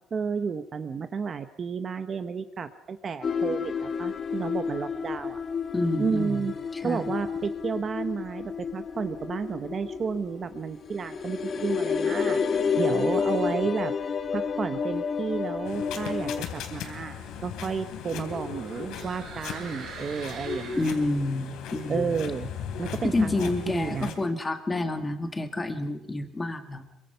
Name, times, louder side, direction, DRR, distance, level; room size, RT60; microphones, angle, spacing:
voice 1, 0.1-5.4 6.0-6.5 6.8-12.4 12.8-13.9 14.3-20.9 21.9-22.5 22.8-24.1, right 6 dB, 25° right, 9 dB, 0.8 m, -32 dB
sound 1, 3.2-16.4, left 6 dB, 30° left, 1.2 m, -30 dB
voice 2, 5.7-6.5 6.7-7.0 20.8-22.2 23.0-26.8, left 2 dB, 15° left, 7 dB, 1.7 m, -28 dB
sound 2, 15.6-24.2, left 7 dB, 70° left, 3.5 m, -37 dB
sound 3, 17.0-21.4, right 6 dB, 45° right, 4.4 m, -45 dB
26.0 x 23.5 x 5.7 m, 0.84 s
cardioid pair, 180°, 0 cm